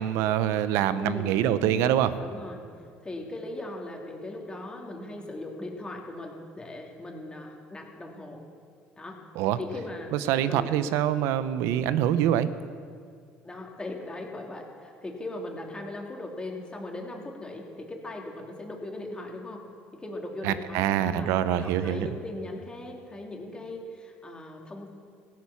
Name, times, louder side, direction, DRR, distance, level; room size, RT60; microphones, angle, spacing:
voice 1, 0.0-2.2 9.3-9.6 10.1-12.5 20.4-22.1, right 11 dB, 75° right, 13 dB, 0.8 m, -25 dB
voice 2, 1.0-1.4 2.2-2.6 3.0-8.4 9.0-9.2 9.6-10.1 10.5-10.8 13.4-19.7 19.9-24.9, left 2 dB, 20° left, 1 dB, 3.0 m, -39 dB
16.0 x 10.5 x 7.1 m, 2.2 s
hypercardioid pair, 75°, 5 cm